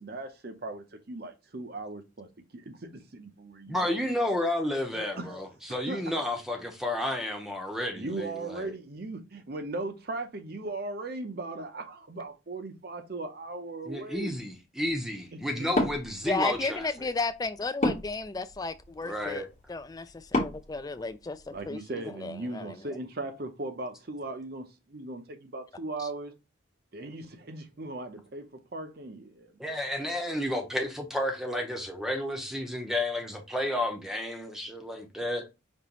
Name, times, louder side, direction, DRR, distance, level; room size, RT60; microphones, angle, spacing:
voice 1, 0.0-3.9 4.3-4.4 5.2-5.3 5.9-6.0 8.0-14.3 15.6-15.7 21.5-26.3 26.9-29.8, right 2 dB, 50° right, 0.7 m, -38 dB
voice 2, 3.7-8.7 13.8-16.9 19.0-19.5 29.6-35.5, left 1 dB, ahead, 0.7 m, -31 dB
voice 3, 4.9-5.4 16.2-23.0 26.0-26.1, left 3 dB, 20° left, 0.3 m, -34 dB
Wood, 15.7-21.7, left 1 dB, 35° left, 1.1 m, -34 dB
5.4 x 3.0 x 3.0 m
head